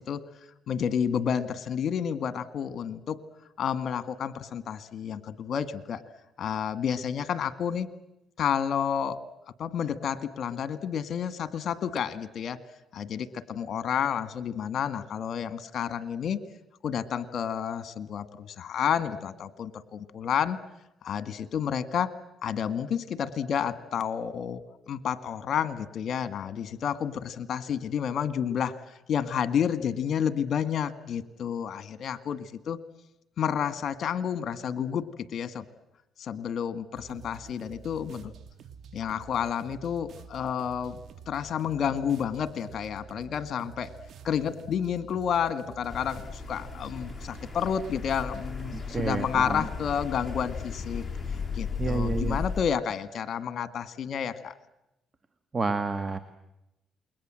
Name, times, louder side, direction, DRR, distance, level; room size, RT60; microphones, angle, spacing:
voice 1, 0.0-3.2 3.6-6.0 6.4-7.9 8.4-9.3 9.6-12.6 12.9-16.4 16.8-20.6 21.0-22.1 22.4-32.8 33.4-35.6 36.2-38.3 38.9-41.0 41.3-43.9 44.2-51.1 51.5-54.5, left 8 dB, 60° left, 14 dB, 2.0 m, -30 dB
sound 1, 36.9-48.7, right 6 dB, 65° right, 2.3 m, -48 dB
sound 2, 45.9-52.6, left 5 dB, 20° left, 5.4 m, -35 dB
voice 2, 48.9-49.7 51.8-52.4 55.5-56.2, right 3 dB, 30° right, 11 dB, 1.8 m, -29 dB
28.5 x 22.5 x 7.7 m, 0.88 s
cardioid pair, 90°, 0 cm